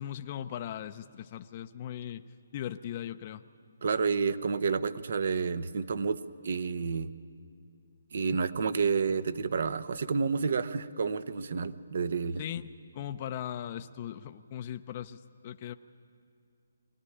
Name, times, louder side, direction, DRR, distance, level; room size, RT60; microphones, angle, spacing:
voice 1, 0.0-2.2 2.5-3.4 12.4-12.7 12.9-15.7, left 11 dB, 35° left, 9 dB, 0.6 m, -38 dB
voice 2, 3.8-7.1 8.1-12.4, right 5 dB, 60° right, 13 dB, 0.9 m, -30 dB
22.0 x 18.0 x 9.9 m, 2.4 s
hypercardioid pair, 150°, 0 cm